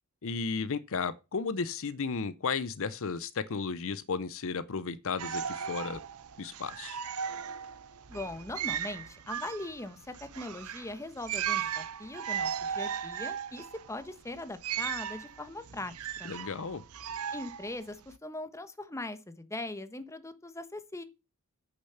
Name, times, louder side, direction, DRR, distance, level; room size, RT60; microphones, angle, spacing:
voice 1, 0.2-6.0 6.4-7.0 16.3-16.8, left 5 dB, 65° left, 0.7 m, -34 dB
sound 1, 5.2-18.2, right 8 dB, 85° right, 0.7 m, -37 dB
voice 2, 8.1-15.9 16.2-16.3 17.3-21.0, left 2 dB, 15° left, 1.0 m, -40 dB
8.7 x 6.8 x 5.7 m
head